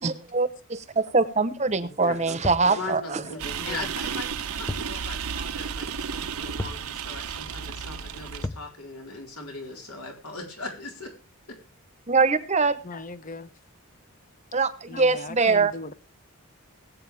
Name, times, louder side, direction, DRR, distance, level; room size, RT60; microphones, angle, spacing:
voice 1, 0.0-3.2 12.1-12.8 14.5-15.7, right 4 dB, 30° right, 0.9 m, -23 dB
voice 2, 1.8-2.4 2.7-11.1, left 3 dB, 80° left, 4.2 m, -39 dB
sound 1, 2.4-2.8 4.7-5.0 5.3-5.4 6.6-6.9 8.4-8.7, left 2 dB, 15° left, 0.5 m, -33 dB
sound 2, 3.4-8.5, right 7 dB, 75° right, 0.8 m, -33 dB
voice 3, 3.6-3.9 12.8-13.5 14.9-15.9, left 3 dB, 35° left, 0.9 m, -38 dB
20.0 x 8.4 x 3.4 m
head